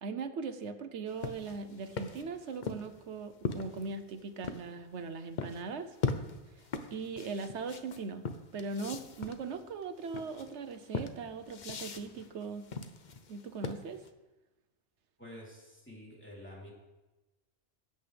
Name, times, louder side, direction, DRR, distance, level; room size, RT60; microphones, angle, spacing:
voice 1, 0.0-5.9 6.9-8.3 8.5-12.7 13.3-14.0, right 4 dB, 85° right, 10 dB, 1.1 m, -39 dB
sound 1, 1.1-4.7 5.4-5.6 6.0-14.1, left 4 dB, 45° left, 0.8 m, -39 dB
voice 2, 15.2-16.7, left 1 dB, 10° left, -5 dB, 3.3 m, -49 dB
19.0 x 8.3 x 3.4 m, 1.1 s
omnidirectional pair, 1.2 m